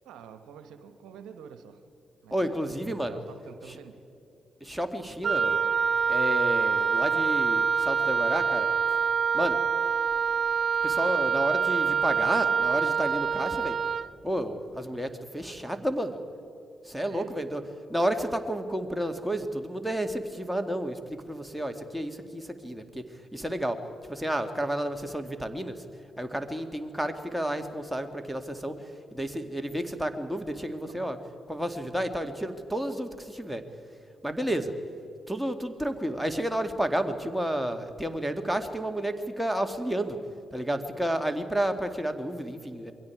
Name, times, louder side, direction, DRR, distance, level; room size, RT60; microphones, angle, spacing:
voice 1, 0.0-1.8 2.2-4.0 17.1-17.3 30.8-31.1, right 7 dB, 75° right, 9 dB, 1.2 m, -47 dB
voice 2, 2.3-3.2 3.7-3.8 4.6-5.6 6.1-8.7 9.3-9.6 10.8-13.8 14.2-16.2 16.8-17.6 17.9-23.8 24.1-25.8 26.2-31.2 31.5-33.6 34.2-34.7 35.3-40.2 40.5-42.9, right 1 dB, ahead, 6 dB, 2.3 m, -31 dB
Wind instrument woodwind instrument, 5.2-14.1, right 6 dB, 50° right, 0.4 m, -25 dB
28.0 x 22.5 x 4.8 m, 2.9 s
hypercardioid pair, 40°, 0 cm